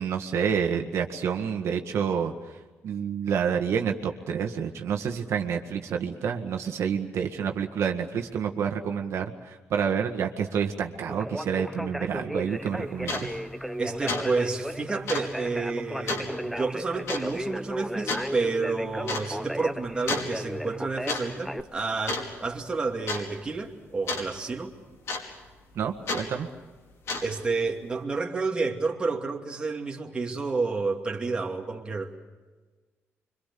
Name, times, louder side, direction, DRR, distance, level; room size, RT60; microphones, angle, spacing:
voice 1, 0.0-2.3 2.8-13.3 25.8-26.5, right 7 dB, 65° right, 4 dB, 1.8 m, -28 dB
Conversation, 11.1-21.6, equal, ahead, 0.8 m, -35 dB
sound 1, 12.6-12.7 13.0-13.3 13.6-13.8 14.1-14.3 14.5-14.6 15.1-15.3 16.1-16.3 17.1-17.3 18.1-18.3 19.1-19.3 20.1-20.3 20.9-21.2 21.5-21.8 22.1-22.6 23.1-23.2 24.1-24.3 25.1-25.5 26.1-26.3 26.9-27.4, left 3 dB, 70° left, 5.2 m, -31 dB
voice 2, 13.8-24.7 27.2-32.1, right 4 dB, 20° right, 0 dB, 2.5 m, -30 dB
26.5 x 24.5 x 6.9 m, 1.3 s
cardioid pair, 150°, 5 cm